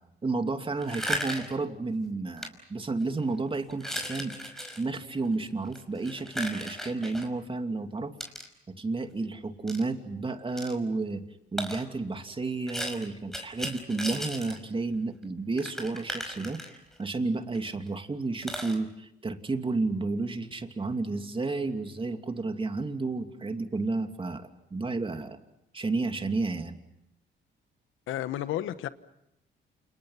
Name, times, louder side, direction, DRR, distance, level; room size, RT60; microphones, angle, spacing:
voice 1, 0.2-4.3 4.8-8.1 8.7-11.2 11.5-16.6 17.0-25.4 25.7-26.8, right 3 dB, 25° right, 2.8 m, -31 dB
sound 1, 0.8-1.6 2.4-2.5 3.0-3.2 3.7-4.8 5.7-7.3 8.2-8.5 9.7-9.8 10.6-10.8 11.6-11.9 12.7-14.6 14.9-15.0 15.2-15.3 15.6-17.0 17.5-17.6 17.9-18.0 18.4-18.8, equal, ahead, 5.3 m, -36 dB
voice 2, 28.1-28.9, left 13 dB, 85° left, 1.3 m, -32 dB
29.0 x 29.0 x 5.8 m
cardioid pair, 90°, 20 cm